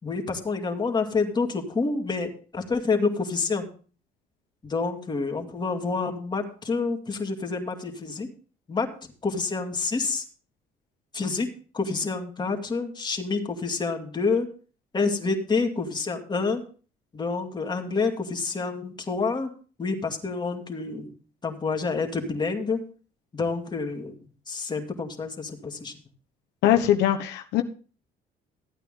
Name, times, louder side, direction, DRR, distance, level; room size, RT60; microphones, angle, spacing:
voice 1, 0.0-3.7 4.6-8.3 8.7-8.9 9.2-10.2 11.1-11.5 11.7-14.5 14.9-16.6 17.1-19.5 19.8-21.1 21.4-22.8 23.3-24.2 24.5-25.9, left 4 dB, 25° left, 3 dB, 2.4 m, -28 dB
voice 2, 26.6-27.6, left 12 dB, 85° left, 6 dB, 1.1 m, -21 dB
15.0 x 8.9 x 3.8 m, 0.39 s
cardioid pair, 110°, 17 cm